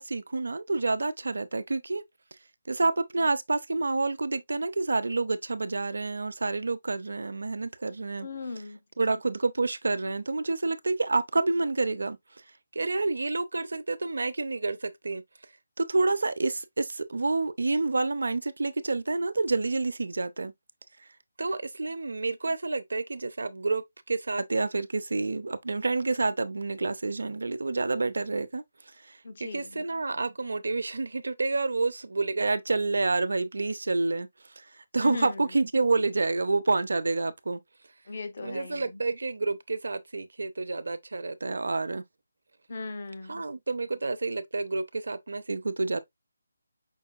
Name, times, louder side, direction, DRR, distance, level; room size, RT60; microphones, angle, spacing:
voice 1, 0.0-2.0 2.7-8.3 9.0-12.4 12.7-15.2 15.8-20.5 21.4-28.6 29.0-37.6 38.4-42.0 43.3-46.0, right 3 dB, 75° right, 0.6 m, -29 dB
voice 2, 8.2-8.8 29.2-29.8 35.0-35.5 38.1-39.0 42.7-43.4, left 3 dB, 50° left, 0.9 m, -38 dB
5.5 x 3.6 x 2.3 m
figure-of-eight pair, 165°, 0 cm